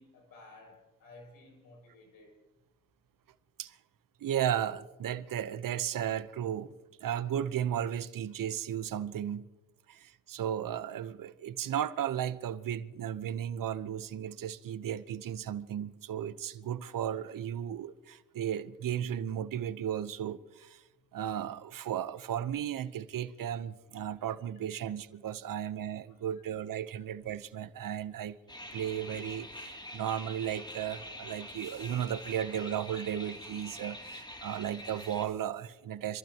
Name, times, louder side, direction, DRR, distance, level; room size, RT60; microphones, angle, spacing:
voice 1, 0.0-2.4 25.5-25.6 26.9-27.0, left 2 dB, 85° left, 6.3 m, -55 dB
voice 2, 4.2-6.7 7.0-9.5 9.9-20.8 21.1-28.4 28.7-36.2, right 10 dB, 75° right, 1.0 m, -35 dB
sound 1, 28.5-35.3, left 1 dB, 15° left, 2.9 m, -45 dB
27.0 x 14.5 x 3.0 m
supercardioid pair, 55°, 34 cm